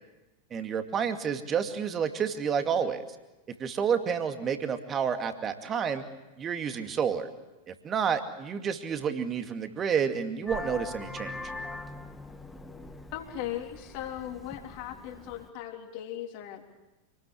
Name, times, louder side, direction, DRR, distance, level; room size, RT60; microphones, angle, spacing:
voice 1, 0.5-3.1 3.5-6.0 6.4-7.3 7.7-11.3, right 7 dB, 25° right, 7 dB, 2.4 m, -30 dB
Vehicle horn car horn honking, 10.5-15.5, left 3 dB, 5° left, 2.1 m, -42 dB
voice 2, 13.1-16.6, left 11 dB, 45° left, 3 dB, 3.6 m, -38 dB
28.0 x 19.5 x 8.4 m, 1.1 s
figure-of-eight pair, 90°, 0 cm